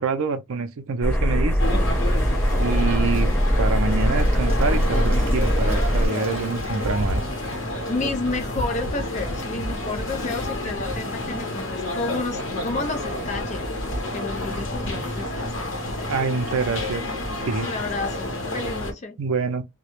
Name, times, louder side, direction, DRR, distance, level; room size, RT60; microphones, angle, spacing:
voice 1, 0.0-1.8 2.6-7.2 16.1-17.0 17.4-17.7 19.2-19.6, right 4 dB, 75° right, 0.5 m, -26 dB
sound 1, 1.0-6.1, equal, 15° left, 1.0 m, -21 dB
sound 2, 1.6-18.9, left 1 dB, 65° left, 0.8 m, -29 dB
Applause / Crowd, 3.6-8.5, right 3 dB, 30° right, 0.7 m, -44 dB
voice 2, 7.9-13.7 14.1-16.1 17.6-19.2, left 3 dB, 35° left, 0.4 m, -31 dB
2.1 x 2.0 x 2.9 m
head